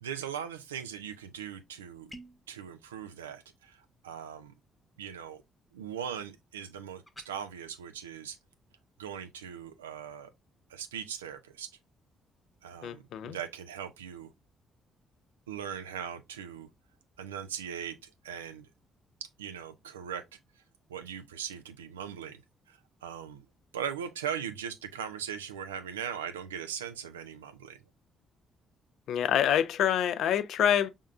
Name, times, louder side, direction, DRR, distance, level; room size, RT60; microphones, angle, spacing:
voice 1, 0.0-2.1 2.5-4.5 5.0-5.4 5.7-8.4 9.0-10.3 10.7-11.7 12.6-14.3 15.5-16.7 17.2-18.7 19.2-20.4 20.9-22.4 22.7-23.5 23.7-27.8, right 8 dB, 90° right, 0.4 m, -39 dB
sound 1, 2.1-2.5 7.1-7.3, equal, 10° left, 0.9 m, -48 dB
voice 2, 12.8-13.4 29.1-30.9, left 10 dB, 65° left, 0.4 m, -26 dB
5.2 x 3.6 x 2.3 m
hypercardioid pair, 45°, 0 cm